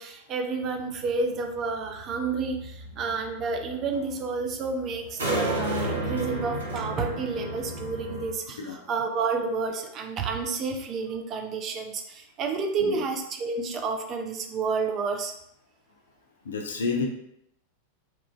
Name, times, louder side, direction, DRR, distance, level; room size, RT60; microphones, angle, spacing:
voice 1, 0.0-15.3, right 4 dB, 30° right, 4 dB, 0.4 m, -30 dB
sound 1, 0.6-8.3, right 1 dB, 65° right, 0.7 m, -34 dB
voice 2, 8.6-8.9 12.8-13.0 16.4-17.1, left 4 dB, 70° left, 1 dB, 0.4 m, -30 dB
2.9 x 2.4 x 2.3 m, 0.76 s
figure-of-eight pair, 90°, 0 cm